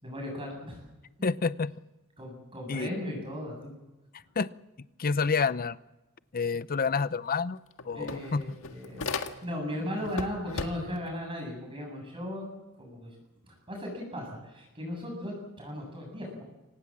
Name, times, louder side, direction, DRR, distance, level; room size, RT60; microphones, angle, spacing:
voice 1, 0.0-0.8 2.2-3.7 7.9-9.1 9.4-12.5 12.8-13.2 13.5-16.4, left 1 dB, 25° right, 0 dB, 7.6 m, -37 dB
voice 2, 1.2-1.7 2.7-2.9 4.4-4.5 5.0-5.8 6.3-7.6 7.8-8.6, left 5 dB, 40° left, 16 dB, 0.7 m, -28 dB
sound 1, 7.1-7.2 7.4-9.7 10.0-11.1, left 4 dB, 70° left, 1.7 m, -37 dB
25.5 x 19.0 x 7.5 m, 1.1 s
head